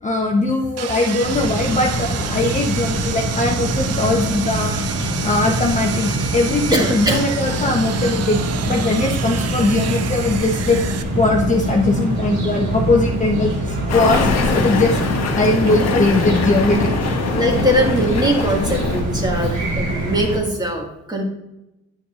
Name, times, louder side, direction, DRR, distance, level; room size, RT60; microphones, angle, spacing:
voice 1, 0.0-4.9 5.2-10.8 11.1-15.0 15.3-17.1, left 2 dB, 25° left, 1 dB, 0.9 m, -20 dB
Sawing, 0.8-11.0, right 8 dB, 55° right, 0.6 m, -30 dB
sound 1, 1.2-20.4, right 1 dB, 70° right, 2.0 m, -24 dB
voice 2, 6.7-7.2 17.3-21.2, right 1 dB, 15° right, 0 dB, 1.8 m, -21 dB
sound 2, 13.9-19.0, left 5 dB, 60° left, 1.2 m, -23 dB
8.8 x 6.8 x 2.5 m, 0.92 s
cardioid pair, 90°, 30 cm